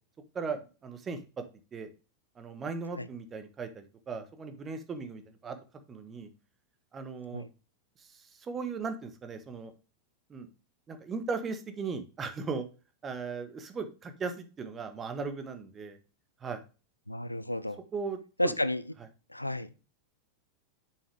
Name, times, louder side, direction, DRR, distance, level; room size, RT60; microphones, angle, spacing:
voice 1, 0.3-1.2 1.7-1.9 2.4-5.6 5.9-6.3 6.9-7.4 8.0-9.7 10.3-10.5 10.9-12.6 13.0-16.0 16.4-16.6 17.9-18.2 18.4-18.5, right 4 dB, 20° right, 1.1 m, -37 dB
voice 2, 17.1-17.8 18.4-18.8 19.3-19.7, left 1 dB, 85° left, 0.5 m, -31 dB
7.0 x 5.8 x 3.4 m
figure-of-eight pair, 90°, 0 cm